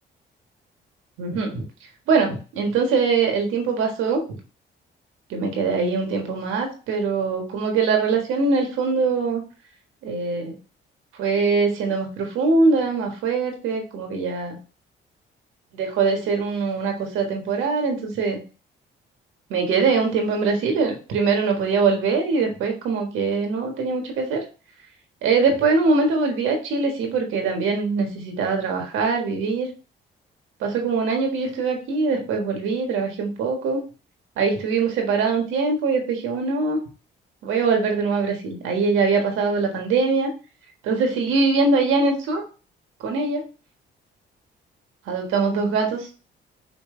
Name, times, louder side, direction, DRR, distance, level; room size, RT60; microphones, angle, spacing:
voice 1, 1.2-1.6 2.1-4.4 5.3-9.4 10.0-10.5 11.2-14.6 15.7-18.4 19.5-24.4 25.2-29.7 30.6-33.8 34.4-36.8 37.4-40.3 40.8-42.4 43.0-43.5 45.1-46.1, right 4 dB, 90° right, 3 dB, 1.5 m, -22 dB
5.4 x 3.0 x 3.2 m, 0.34 s
cardioid pair, 90°, 20 cm